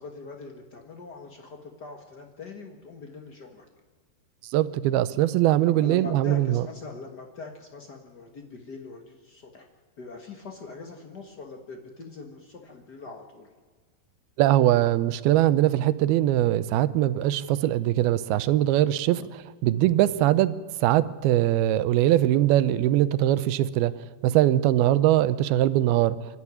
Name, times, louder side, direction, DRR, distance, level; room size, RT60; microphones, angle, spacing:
voice 1, 0.0-3.6 5.8-9.7 10.0-13.5, left 4 dB, 80° left, 3 dB, 0.9 m, -42 dB
voice 2, 4.5-6.6 14.4-19.2 19.6-23.9 24.2-26.2, right 13 dB, 80° right, 15 dB, 2.5 m, -21 dB
26.0 x 13.0 x 9.8 m, 1.4 s
omnidirectional pair, 4.7 m